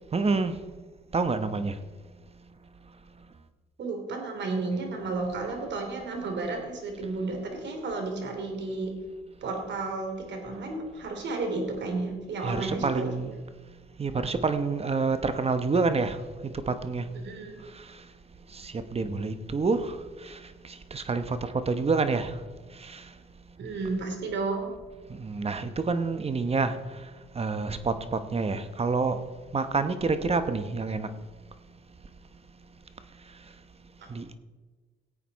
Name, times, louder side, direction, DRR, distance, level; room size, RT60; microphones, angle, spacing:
voice 1, 0.1-0.6 1.1-1.7 12.4-13.3 14.0-16.2 16.4-17.0 18.6-20.0 20.2-20.4 20.9-22.3 22.8-23.0 25.2-26.7 27.3-29.2 29.5-31.1 34.1-34.2, right 4 dB, 30° right, 11 dB, 1.0 m, -27 dB
voice 2, 3.8-8.9 9.4-13.1 17.2-17.6 23.6-24.7, right 3 dB, 65° right, 3 dB, 3.0 m, -32 dB
17.0 x 8.5 x 4.1 m, 1.3 s
cardioid pair, 90°, 20 cm